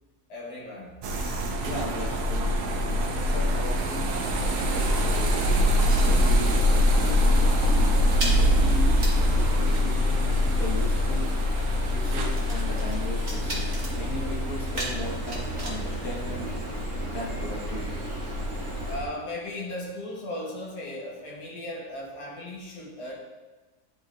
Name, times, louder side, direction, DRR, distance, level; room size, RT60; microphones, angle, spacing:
voice 1, 0.3-1.0 18.8-23.2, left 1 dB, 90° left, -3 dB, 1.8 m, -36 dB
sound 1, 1.0-19.0, left 1 dB, 80° right, 1.2 m, -25 dB
voice 2, 1.6-2.6 2.9-4.1 4.5-5.5 6.0-7.1 8.3-10.3 10.6-11.3 11.9-13.6 13.9-16.7 17.1-17.9, left 1 dB, 65° left, -3 dB, 1.6 m, -37 dB
Stream, 4.1-19.0, right 4 dB, 5° left, 1.5 m, -34 dB
sound 2, 5.7-6.8 7.0-7.3 7.5-16.9, right 1 dB, 40° right, 1.3 m, -40 dB
10.0 x 3.9 x 2.5 m, 1.2 s
omnidirectional pair, 1.7 m